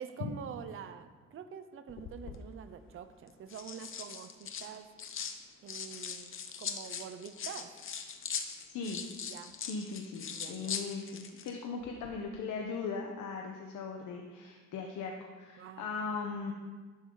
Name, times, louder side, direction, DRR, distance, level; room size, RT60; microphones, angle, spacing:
voice 1, 0.0-4.9 5.6-7.7 9.3-9.5 10.3-10.8 15.6-15.9, right 7 dB, 45° right, 9 dB, 0.7 m, -46 dB
sound 1, 1.9-2.4 3.3-5.4 5.7-11.5 11.8-12.1, left 7 dB, 45° left, 1.0 m, -41 dB
voice 2, 8.7-9.0 9.6-16.5, left 5 dB, 80° left, 2 dB, 1.2 m, -39 dB
12.0 x 11.5 x 4.0 m, 1.4 s
cardioid pair, 145°, 30 cm